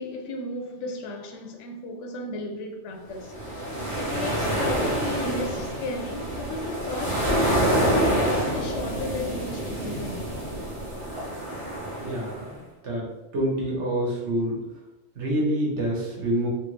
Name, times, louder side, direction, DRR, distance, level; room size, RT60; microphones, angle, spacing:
voice 1, 0.0-3.3 4.0-10.3, left 2 dB, 80° left, 0.9 m, -34 dB
sound 1, 3.2-12.5, right 1 dB, 30° right, 0.8 m, -27 dB
voice 2, 12.0-12.4 12.8-13.0 13.3-14.5 15.2-16.5, right 1 dB, 75° right, 1.2 m, -26 dB
3.3 x 2.4 x 3.1 m
omnidirectional pair, 1.2 m